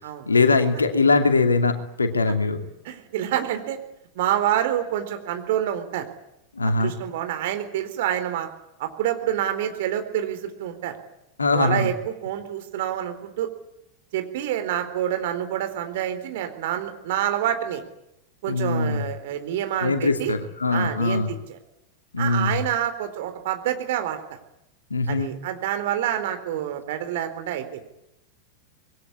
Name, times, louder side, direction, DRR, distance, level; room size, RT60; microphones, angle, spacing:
voice 1, 0.3-2.6 6.6-6.9 11.4-11.9 18.5-19.1 19.8-21.3 22.1-22.6 24.9-25.3, left 3 dB, 75° left, 7 dB, 2.9 m, -21 dB
voice 2, 2.8-3.8 4.2-6.1 6.6-8.5 8.8-10.9 11.5-13.5 14.1-17.8 18.4-20.3 20.7-21.6 22.2-24.2 25.1-27.8, right 11 dB, 55° right, 8 dB, 4.0 m, -27 dB
26.0 x 22.0 x 9.9 m, 0.85 s
figure-of-eight pair, 90°, 0 cm